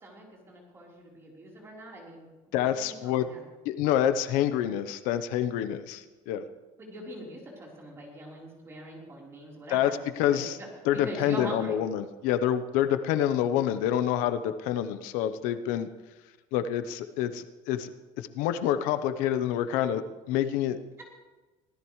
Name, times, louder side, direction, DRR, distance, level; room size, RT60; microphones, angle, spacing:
voice 1, 0.0-3.4 6.8-9.9 10.3-10.5 11.0-11.8, right 1 dB, 20° right, -3 dB, 4.0 m, -42 dB
voice 2, 2.5-3.3 3.6-6.4 9.7-10.6 10.8-15.9 16.5-17.9 18.2-20.8, left 10 dB, 75° left, 11 dB, 0.9 m, -27 dB
24.5 x 16.5 x 3.2 m, 1.2 s
cardioid pair, 180°, 14 cm